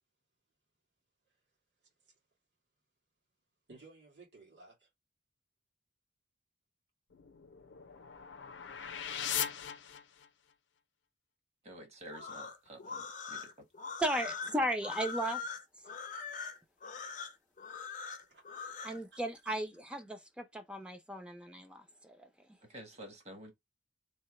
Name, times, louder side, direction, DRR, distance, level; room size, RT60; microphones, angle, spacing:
voice 1, 1.8-2.2 3.7-4.9 17.7-17.8 18.3-18.4 18.7-19.5, right 3 dB, 75° right, 2.0 m, -58 dB
sound 1, 7.1-10.5, left 9 dB, 90° left, 0.5 m, -40 dB
voice 2, 11.6-13.5 22.7-23.5, right 1 dB, 40° right, 1.2 m, -50 dB
sound 2, 12.1-19.0, left 5 dB, 45° left, 0.6 m, -42 dB
voice 3, 14.0-15.4 18.8-22.3, right 1 dB, 5° right, 0.6 m, -36 dB
3.3 x 2.7 x 3.1 m
head